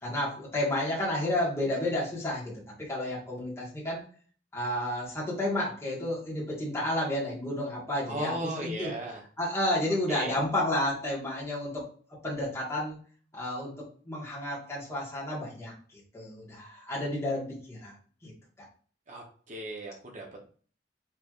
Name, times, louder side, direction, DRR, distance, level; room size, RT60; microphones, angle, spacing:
voice 1, 0.0-2.5 2.8-4.0 4.5-8.9 9.4-11.8 12.2-13.0 13.3-15.7 16.1-17.9 18.2-18.3, left 1 dB, 15° left, -8 dB, 1.4 m, -31 dB
voice 2, 8.1-9.2 10.1-10.3 19.1-20.5, right 1 dB, 40° right, 0 dB, 0.8 m, -36 dB
4.4 x 3.2 x 2.4 m, 0.43 s
head